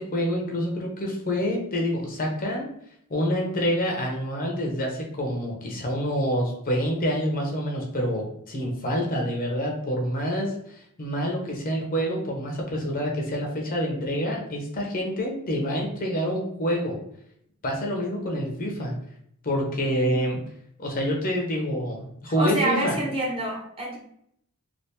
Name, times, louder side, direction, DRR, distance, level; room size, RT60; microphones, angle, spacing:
voice 1, 0.0-2.7 3.1-17.0 17.6-18.9 19.4-20.4 20.8-23.0, equal, 40° left, 0 dB, 0.7 m, -27 dB
voice 2, 20.0-20.3 22.4-24.0, right 2 dB, 25° right, -4 dB, 0.8 m, -28 dB
3.4 x 2.5 x 2.8 m, 0.71 s
head